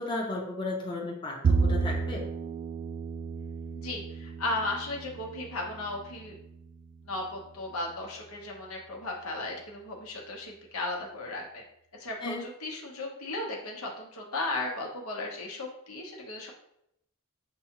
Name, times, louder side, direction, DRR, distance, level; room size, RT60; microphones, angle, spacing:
voice 1, 0.0-2.3 12.2-12.4, left 2 dB, 20° left, -3 dB, 0.7 m, -34 dB
Bowed string instrument, 1.4-7.8, right 4 dB, 40° right, 0.3 m, -32 dB
voice 2, 3.7-6.3 7.1-11.6 12.0-16.5, left 2 dB, 85° left, -1 dB, 1.0 m, -35 dB
6.7 x 2.3 x 2.9 m, 0.77 s
head